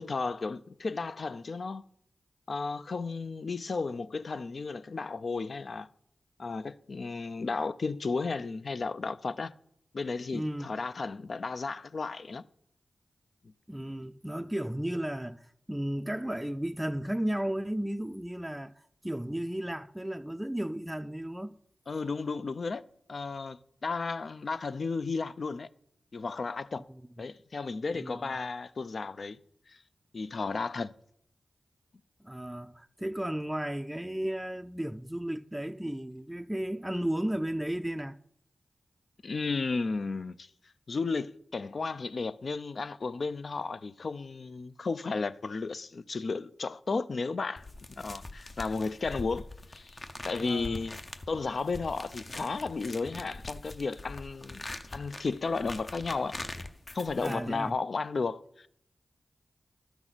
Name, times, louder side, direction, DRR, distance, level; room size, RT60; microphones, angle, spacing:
voice 1, 0.0-1.8 2.5-5.9 6.4-9.5 9.9-12.4 21.9-22.8 23.1-25.7 26.1-26.8 27.2-29.4 29.7-29.8 30.1-30.9 39.2-40.5 40.9-47.7 48.0-50.0 50.2-51.0 51.3-54.7 54.9-56.3 56.9-58.7, left 4 dB, 65° left, 0.4 m, -33 dB
voice 2, 10.3-10.7 13.7-18.7 19.0-21.6 26.9-27.0 27.9-28.3 32.2-38.2 50.4-50.8 57.2-57.7, right 1 dB, 10° right, 0.4 m, -34 dB
sound 1, 47.6-57.7, left 2 dB, 45° left, 0.8 m, -43 dB
12.5 x 6.1 x 4.0 m
cardioid pair, 45°, 0 cm